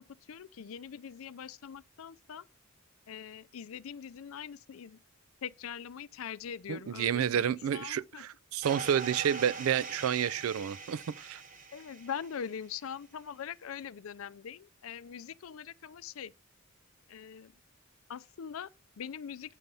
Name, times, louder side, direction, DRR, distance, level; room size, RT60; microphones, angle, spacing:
voice 1, 0.0-2.5 3.1-5.0 5.4-8.3 11.7-16.3 17.1-17.5 18.1-19.6, left 7 dB, 80° left, 0.4 m, -42 dB
voice 2, 6.7-11.4, right 9 dB, 85° right, 0.3 m, -30 dB
sound 1, 8.6-12.7, right 4 dB, 40° right, 1.1 m, -43 dB
9.1 x 6.9 x 5.3 m
head